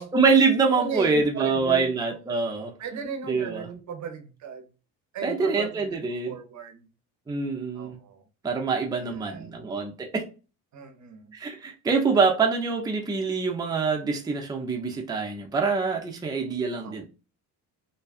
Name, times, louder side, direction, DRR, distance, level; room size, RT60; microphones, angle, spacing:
voice 1, 0.0-2.7 3.3-3.7 5.2-6.4 7.3-8.0 8.4-10.2 11.3-17.0, right 4 dB, 10° right, 0.5 m, -25 dB
voice 2, 0.8-1.9 2.8-4.6 5.1-6.0 6.3-6.8 7.7-8.2 9.0-9.6 10.7-11.3 16.8-17.0, right 6 dB, 45° right, 0.7 m, -36 dB
2.7 x 2.2 x 2.4 m
supercardioid pair, 85°, 38 cm